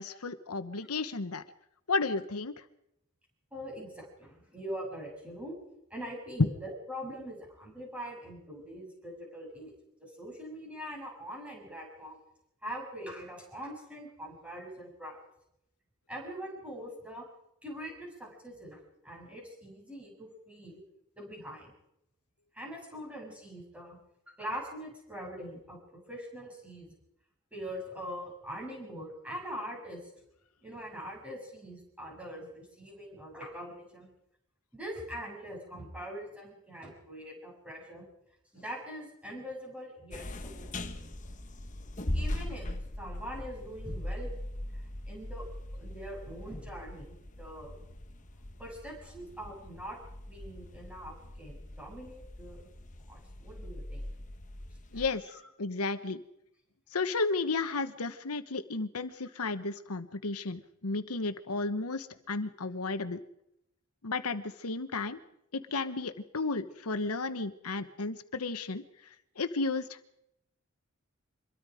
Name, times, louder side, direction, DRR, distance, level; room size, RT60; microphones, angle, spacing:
voice 1, 0.0-1.4 1.9-2.5 6.4-6.5 54.9-55.2 55.6-56.2 56.9-63.2 64.0-65.2 65.5-68.8 69.4-70.2, left 3 dB, 90° left, 11 dB, 1.2 m, -33 dB
voice 2, 3.5-5.6 5.9-9.7 10.0-12.2 12.6-15.2 16.1-17.3 17.6-20.8 21.2-21.7 22.5-24.0 24.3-26.9 27.5-30.1 30.6-34.1 34.7-38.1 38.5-41.1 42.1-44.3 44.7-45.4 45.7-47.8 48.6-50.0 50.3-52.7 53.1-54.1 54.9-55.4, equal, 5° right, -2 dB, 7.4 m, -43 dB
sound 1, 40.1-55.1, left 1 dB, 35° left, 1.3 m, -40 dB
25.5 x 22.5 x 5.0 m, 0.81 s
head